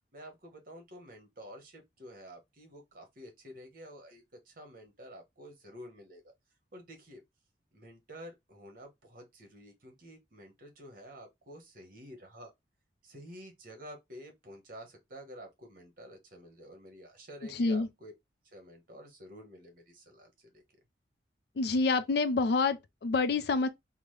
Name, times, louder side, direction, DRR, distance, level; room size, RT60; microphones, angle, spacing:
voice 1, 0.1-6.2 6.7-7.2 7.7-12.5 13.0-18.1 18.4-20.6, equal, 50° right, 1.1 m, -50 dB
voice 2, 17.5-17.9 21.6-23.7, left 3 dB, 65° left, 0.4 m, -27 dB
3.7 x 2.1 x 3.1 m
head